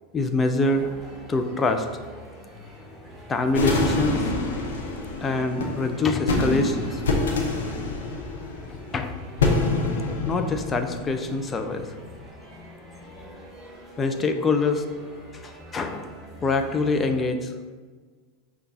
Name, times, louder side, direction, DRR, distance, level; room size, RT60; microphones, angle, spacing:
voice 1, 0.1-1.0 1.3-1.9 3.3-4.3 5.2-7.0 8.7-9.1 10.3-11.9 14.0-14.8 15.4-16.1 16.4-17.5, left 3 dB, 20° left, 6 dB, 0.4 m, -25 dB
sound 1, 0.6-17.2, equal, ahead, 1.3 m, -44 dB
sound 2, 3.5-11.8, left 2 dB, 70° left, 0.6 m, -26 dB
5.7 x 2.4 x 3.9 m, 1.5 s
figure-of-eight pair, 85°, 0 cm